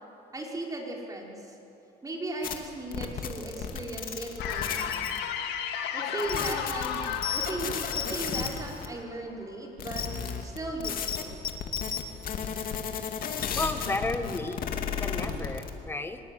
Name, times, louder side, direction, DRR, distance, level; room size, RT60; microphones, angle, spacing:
voice 1, 0.3-1.6 2.0-5.1 5.9-10.1 10.4-11.4, right 2 dB, 20° right, -1 dB, 5.4 m, -37 dB
sound 1, 2.4-2.6 2.9-5.2 6.2-8.9 9.8-15.7, left 7 dB, 55° left, 2.6 m, -33 dB
sound 2, 4.4-9.5, left 8 dB, 85° left, 2.0 m, -34 dB
voice 2, 13.5-16.2, left 2 dB, 15° left, 8 dB, 1.8 m, -33 dB
24.5 x 20.0 x 9.4 m, 2.9 s
cardioid pair, 110°, 17 cm